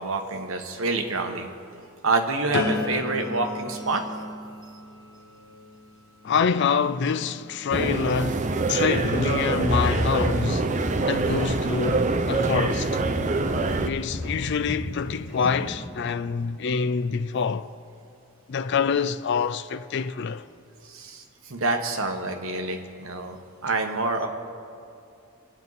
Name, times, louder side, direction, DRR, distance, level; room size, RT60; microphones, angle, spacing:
voice 1, 0.0-1.5 2.0-4.0 20.8-23.4 23.6-24.3, right 3 dB, 70° right, 1.3 m, -27 dB
sound 1, 2.5-8.4 8.9-9.3, left 3 dB, 75° left, 1.1 m, -35 dB
voice 2, 6.2-10.7 11.1-13.0 13.8-17.7 18.5-20.5, left 6 dB, 55° left, 0.4 m, -26 dB
sound 2, 7.7-13.9, right 3 dB, 35° right, 0.5 m, -25 dB
Walk footsteps, 9.1-9.4 9.7-12.7 13.0-13.3 13.5-14.9 15.3-15.7, left 1 dB, 5° right, 3.6 m, -32 dB
25.0 x 9.0 x 4.1 m
head